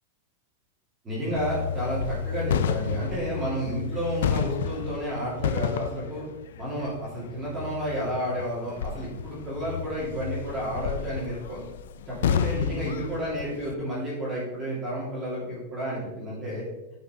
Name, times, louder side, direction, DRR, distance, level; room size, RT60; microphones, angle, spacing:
voice 1, 1.0-6.2 6.6-11.6 12.1-16.6, equal, 15° right, -8 dB, 2.8 m, -31 dB
sound 1, 1.3-13.8, left 8 dB, 80° left, 0.5 m, -31 dB
11.0 x 5.7 x 3.2 m, 1.0 s
supercardioid pair, 170°, 0 cm